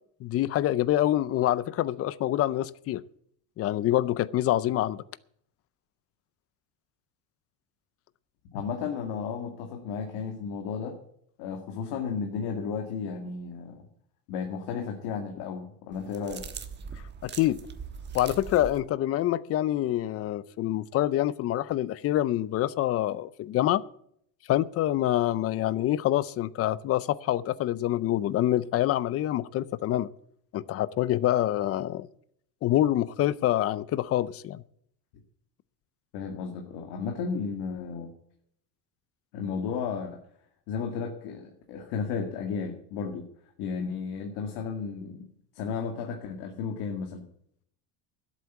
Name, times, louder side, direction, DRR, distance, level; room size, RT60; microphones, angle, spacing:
voice 1, 0.2-3.0 3.6-5.0 17.2-17.7 18.1-23.8 24.5-30.1 30.5-32.1 32.6-34.6, left 13 dB, 35° left, 0.5 m, -26 dB
voice 2, 8.5-11.0 11.4-13.8 14.3-16.5 36.1-38.1 39.3-40.2 40.7-43.3 43.6-45.3 45.5-47.2, left 6 dB, 65° left, 2.1 m, -33 dB
sound 1, 15.9-18.8, right 6 dB, 25° right, 1.2 m, -41 dB
12.5 x 8.3 x 8.2 m
cardioid pair, 140°, 42 cm